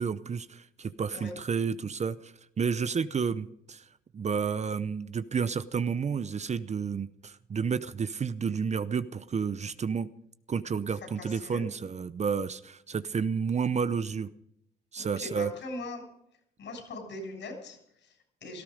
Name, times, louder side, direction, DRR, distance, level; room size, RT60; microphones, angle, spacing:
voice 1, 0.0-3.8 4.1-10.1 10.5-14.3 14.9-15.5, right 6 dB, 35° right, 14 dB, 0.7 m, -31 dB
voice 2, 11.2-11.6 15.0-16.0 16.6-18.6, left 2 dB, 65° left, 3 dB, 7.0 m, -41 dB
18.0 x 14.0 x 5.1 m, 0.74 s
cardioid pair, 90°, 20 cm